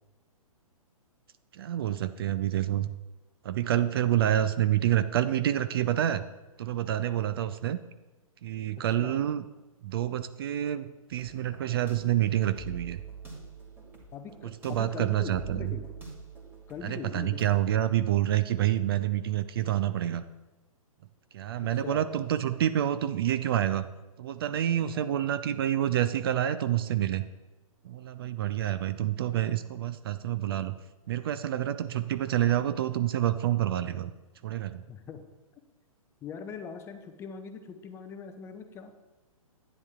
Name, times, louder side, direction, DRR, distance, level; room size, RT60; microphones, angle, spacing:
voice 1, 1.5-2.9 3.4-6.2 6.6-7.8 8.4-9.4 9.8-13.0 14.4-15.8 16.8-20.2 21.3-23.9 24.2-27.3 27.8-30.8 31.1-34.1 34.4-34.8, right 12 dB, 40° right, 13 dB, 0.4 m, -28 dB
voice 2, 8.8-9.2 14.1-15.9 16.7-17.5 21.8-22.0 24.9-25.1 34.9-35.2 36.2-38.9, left 6 dB, 15° left, 7 dB, 0.5 m, -42 dB
sound 1, 11.1-17.5, right 4 dB, 10° right, 2.0 m, -45 dB
10.5 x 9.4 x 2.4 m, 1.1 s
figure-of-eight pair, 120°, 19 cm